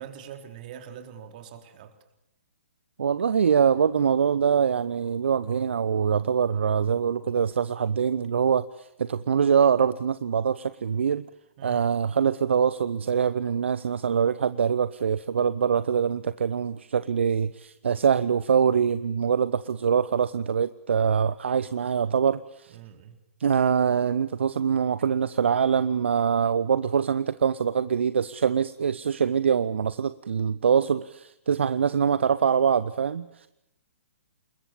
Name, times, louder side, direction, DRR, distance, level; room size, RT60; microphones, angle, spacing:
voice 1, 0.0-2.0 11.6-11.9 21.9-22.2 22.7-23.2, right 8 dB, 40° right, 6 dB, 4.0 m, -43 dB
voice 2, 3.0-11.2 11.6-22.8 23.4-33.5, right 7 dB, 60° right, 15 dB, 0.9 m, -24 dB
28.5 x 21.5 x 7.0 m, 0.82 s
figure-of-eight pair, 125°, 7 cm